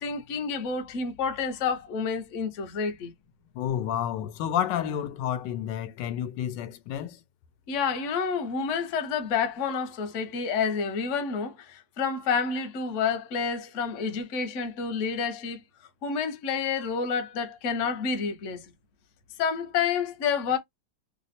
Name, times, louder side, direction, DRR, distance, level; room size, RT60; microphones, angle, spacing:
voice 1, 0.0-3.1 7.7-15.6 16.0-18.6 19.4-20.6, left 6 dB, 55° left, 0.9 m, -29 dB
voice 2, 3.5-7.2, left 10 dB, 90° left, 1.2 m, -30 dB
3.2 x 2.0 x 4.0 m
omnidirectional pair, 1.9 m